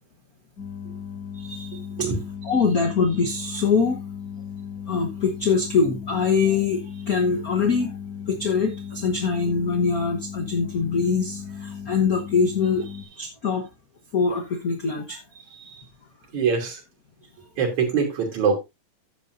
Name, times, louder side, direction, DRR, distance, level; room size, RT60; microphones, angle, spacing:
sound 1, 0.6-13.0, left 7 dB, 30° left, 3.0 m, -36 dB
voice 1, 1.3-2.1 2.4-4.0 4.9-7.9 8.3-12.8 13.2-13.7 14.1-15.2, left 5 dB, 55° left, 5 dB, 1.0 m, -23 dB
voice 2, 15.5-15.8 16.3-16.8 17.6-18.6, right 6 dB, 75° right, 0 dB, 4.3 m, -24 dB
11.5 x 8.6 x 2.7 m, 0.23 s
omnidirectional pair, 3.3 m